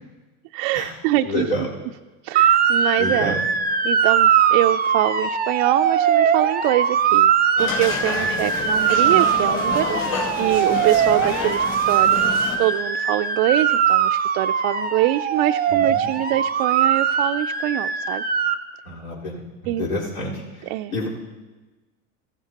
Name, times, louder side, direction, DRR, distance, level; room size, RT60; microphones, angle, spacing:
voice 1, 0.5-1.5 2.2-3.4 3.8-10.0 10.4-18.2 19.7-19.9 20.6-20.9, right 16 dB, 60° right, 7 dB, 0.5 m, -24 dB
voice 2, 1.2-1.7 3.0-3.4 8.1-8.5 15.7-16.1 18.9-20.4 20.9-21.1, left 1 dB, 80° left, -6 dB, 4.2 m, -28 dB
Motor vehicle (road) / Siren, 2.3-18.6, right 7 dB, 20° right, 0.7 m, -20 dB
sound 1, 7.6-12.6, left 5 dB, 40° left, 3.4 m, -29 dB
15.0 x 14.0 x 2.9 m, 1.2 s
hypercardioid pair, 90°, 41 cm